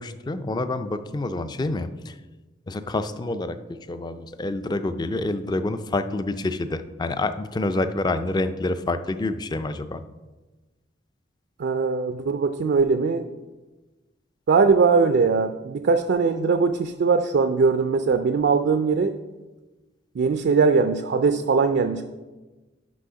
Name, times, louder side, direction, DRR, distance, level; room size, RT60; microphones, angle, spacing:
voice 1, 0.0-2.1 2.7-10.0, left 2 dB, 20° left, 11 dB, 0.3 m, -27 dB
voice 2, 11.6-13.2 14.5-19.1 20.2-22.0, right 4 dB, 60° right, 8 dB, 0.4 m, -20 dB
6.2 x 5.5 x 5.7 m, 1.2 s
head